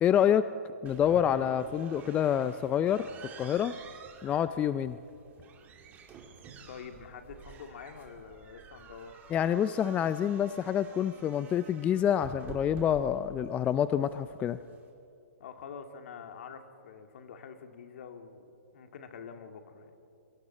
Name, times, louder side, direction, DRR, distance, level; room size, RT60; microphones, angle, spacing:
voice 1, 0.0-0.4 0.8-3.1 3.4-3.7 4.2-5.0 9.3-14.6, left 9 dB, 15° left, 13 dB, 0.4 m, -27 dB
sound 1, 0.9-14.9, right 6 dB, 20° right, 2.7 m, -50 dB
voice 2, 6.7-9.1 15.4-18.5 18.7-19.9, left 6 dB, 55° left, 6 dB, 2.3 m, -46 dB
29.5 x 24.0 x 4.4 m, 2.6 s
hypercardioid pair, 140°, 8 cm